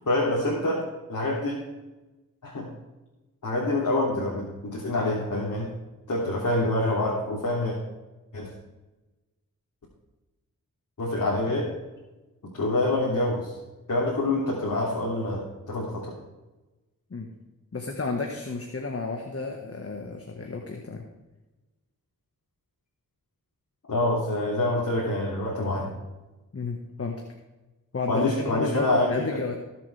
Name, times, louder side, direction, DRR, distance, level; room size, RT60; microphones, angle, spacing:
voice 1, 0.1-0.8 1.1-1.6 2.4-2.7 3.4-5.7 6.1-7.8 8.3-8.5 11.0-11.7 12.6-13.5 13.9-16.1 23.9-25.9 28.1-29.3, left 2 dB, 60° left, -5 dB, 3.0 m, -26 dB
voice 2, 17.7-21.0 26.5-27.2 27.9-29.5, left 3 dB, 45° left, 2 dB, 1.6 m, -31 dB
18.0 x 7.7 x 3.5 m, 1.1 s
cardioid pair, 65°, 34 cm